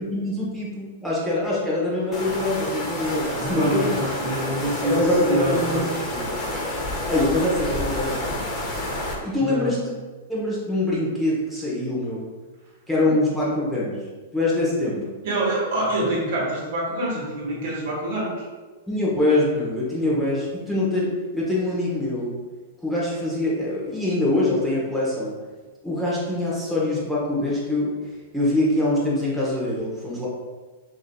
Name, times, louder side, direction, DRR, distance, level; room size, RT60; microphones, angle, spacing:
voice 1, 0.0-3.9 4.8-5.8 6.1-6.3 7.1-8.7 9.2-9.9 10.3-12.3 12.9-14.1 14.3-15.1 18.9-22.3 22.8-25.3 25.8-27.9 28.3-30.3, left 1 dB, ahead, -8 dB, 1.0 m, -24 dB
sound 1, 2.1-9.1, left 1 dB, 20° left, 1.2 m, -29 dB
voice 2, 3.4-5.9 9.4-9.8 15.2-18.5, right 1 dB, 60° right, -3 dB, 1.4 m, -26 dB
6.1 x 2.8 x 2.3 m, 1.3 s
hypercardioid pair, 140°, 0 cm